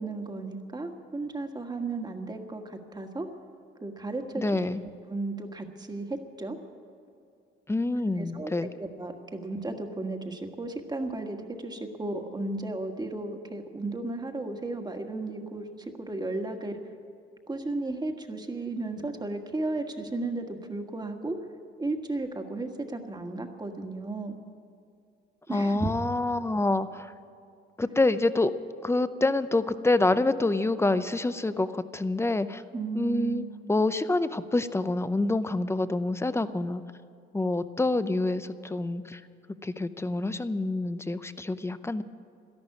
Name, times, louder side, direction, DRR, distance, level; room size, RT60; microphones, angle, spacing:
voice 1, 0.0-3.3 3.8-4.6 5.1-6.6 8.2-16.7 17.5-21.4 21.8-24.4 25.5-25.9 32.7-33.7, right 2 dB, 20° right, 4 dB, 1.6 m, -34 dB
voice 2, 4.4-4.8 7.7-8.7 25.5-27.1 27.8-28.5 28.8-32.6 32.9-36.8 37.3-39.2 39.6-42.0, left 2 dB, 15° left, 13 dB, 0.6 m, -27 dB
13.0 x 11.5 x 9.7 m, 2.5 s
cardioid pair, 90°, 20 cm